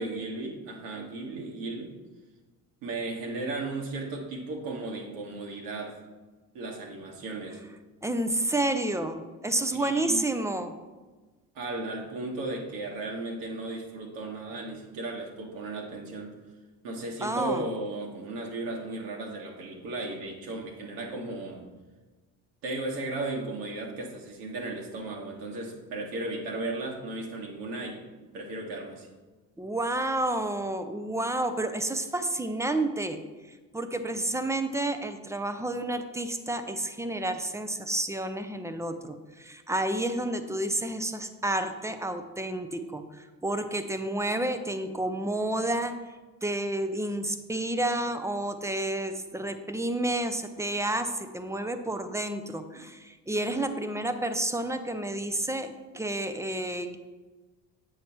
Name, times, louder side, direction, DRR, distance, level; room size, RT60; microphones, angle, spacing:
voice 1, 0.0-1.9 2.8-5.9 6.5-7.6 9.7-10.2 11.5-16.3 16.8-21.6 22.6-28.0 28.3-29.1, right 2 dB, 65° right, 0 dB, 1.3 m, -35 dB
voice 2, 8.0-10.7 17.2-17.6 29.6-33.2 33.7-45.9 46.4-57.0, right 1 dB, 5° right, 8 dB, 0.4 m, -30 dB
8.3 x 3.1 x 5.4 m, 1.3 s
figure-of-eight pair, 50°, 49 cm